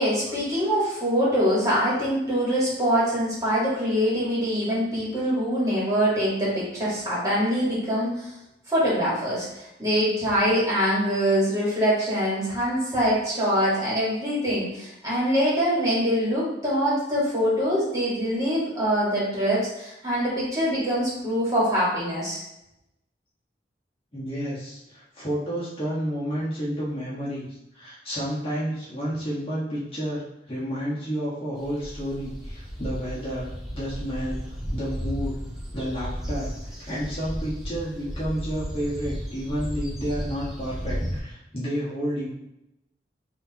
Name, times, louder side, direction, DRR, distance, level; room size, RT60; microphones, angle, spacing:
voice 1, 0.0-8.3 8.7-22.4, equal, 20° right, -8 dB, 1.6 m, -24 dB
voice 2, 24.1-27.5 27.7-33.5 33.7-35.3 35.7-42.3, equal, 30° left, -9 dB, 1.3 m, -31 dB
sound 1, 31.6-41.2, equal, ahead, 0.7 m, -34 dB
6.4 x 2.7 x 2.9 m, 0.87 s
head